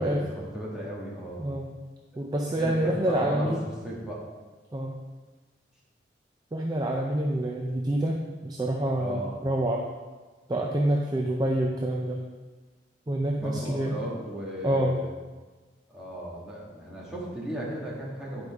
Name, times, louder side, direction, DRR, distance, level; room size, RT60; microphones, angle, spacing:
voice 1, 0.0-1.5 2.6-3.5 3.8-4.3 9.0-9.4 13.4-15.1 15.9-18.5, right 1 dB, 5° right, -7 dB, 1.8 m, -36 dB
voice 2, 1.4-1.7 2.2-3.6 4.7-5.0 6.5-9.9 10.5-12.2 13.1-14.0 14.6-15.0, right 1 dB, 20° right, 0 dB, 0.5 m, -27 dB
9.6 x 5.2 x 3.6 m, 1.3 s
head